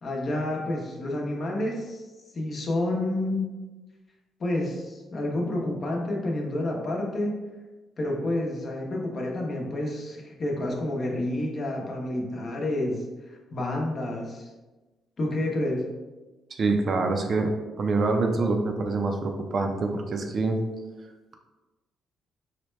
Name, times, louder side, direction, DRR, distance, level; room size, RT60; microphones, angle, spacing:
voice 1, 0.0-2.0 2.3-3.5 4.4-7.4 8.0-14.5 15.2-15.9, left 1 dB, 45° left, -1 dB, 0.8 m, -29 dB
voice 2, 16.5-17.5 17.8-20.6, right 3 dB, 50° right, 4 dB, 0.5 m, -25 dB
4.1 x 2.2 x 3.1 m, 1.2 s
cardioid pair, 90°, 0 cm